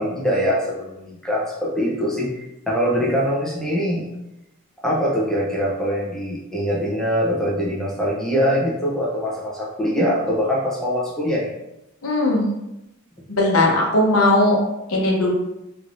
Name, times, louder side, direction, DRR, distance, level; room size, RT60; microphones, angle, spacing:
voice 1, 0.0-4.0 4.8-11.5, equal, 5° left, -5 dB, 0.8 m, -23 dB
voice 2, 12.0-12.5 13.3-14.6 14.9-15.3, left 2 dB, 85° left, -1 dB, 0.9 m, -18 dB
3.4 x 3.2 x 2.6 m, 0.89 s
head